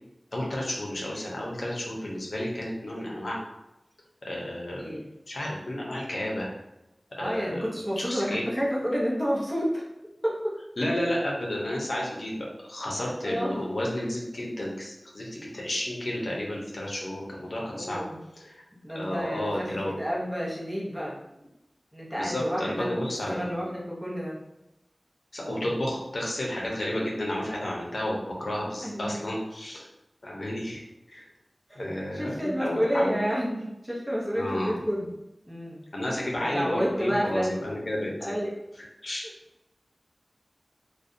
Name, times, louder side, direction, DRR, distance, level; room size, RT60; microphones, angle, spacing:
voice 1, 0.3-3.4 4.2-6.5 7.1-7.7 8.0-8.5 10.8-18.0 18.4-18.6 18.9-19.9 22.1-23.5 25.3-29.9 30.2-31.3 31.8-33.2 34.4-34.8 35.9-38.1 39.0-39.3, left 1 dB, 80° left, -3 dB, 0.6 m, -32 dB
voice 2, 7.2-9.8 10.2-10.3 13.2-13.6 17.7-18.2 18.8-21.2 21.9-22.9 23.3-24.4 28.8-29.2 31.7-35.1 35.5-35.8 36.4-37.6 38.2-38.5, equal, 15° right, -5 dB, 0.8 m, -30 dB
2.5 x 2.2 x 2.6 m, 0.92 s
wide cardioid pair, 45°, 0 cm